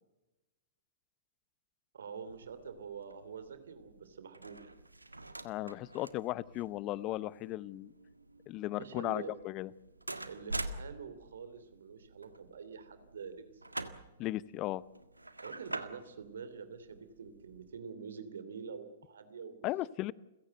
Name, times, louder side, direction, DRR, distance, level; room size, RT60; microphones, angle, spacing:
voice 1, 1.9-4.8 8.7-9.3 10.3-13.6 15.4-19.7, right 6 dB, 65° right, 10 dB, 3.0 m, -46 dB
sound 1, 2.2-17.7, right 2 dB, 90° right, 1.6 m, -47 dB
voice 2, 5.4-7.9 8.5-9.7 14.2-14.8 19.6-20.1, left 16 dB, 35° left, 21 dB, 0.7 m, -36 dB
29.5 x 16.5 x 7.9 m, 1.0 s
figure-of-eight pair, 110°, 0 cm